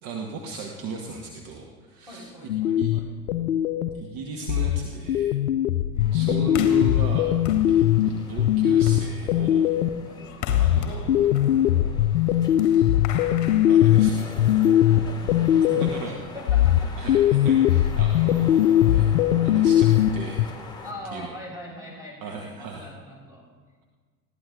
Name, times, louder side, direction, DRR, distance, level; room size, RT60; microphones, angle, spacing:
voice 1, 0.0-2.2 2.5-2.9 3.9-5.3 6.1-7.3 7.7-9.8 10.6-12.1 12.7-12.8 13.4-14.4 14.9-15.0 15.7-16.2 17.0-19.1 19.4-20.4 21.1-21.3 22.2-22.9, right 4 dB, 40° right, 1 dB, 1.7 m, -36 dB
voice 2, 2.1-3.1 5.9-6.4 10.1-10.4 14.8-17.1 18.1-18.3 20.8-23.4, left 1 dB, 5° right, -3 dB, 6.4 m, -42 dB
sound 1, 2.5-4.1 4.5-10.1 10.5-16.1 16.5-20.5, left 11 dB, 65° left, 0.6 m, -20 dB
sound 2, 6.0-20.9, left 3 dB, 10° left, 2.4 m, -43 dB
sound 3, 6.5-14.6, left 7 dB, 35° left, 1.5 m, -38 dB
20.5 x 15.5 x 3.9 m, 1.5 s
figure-of-eight pair, 80°, 47 cm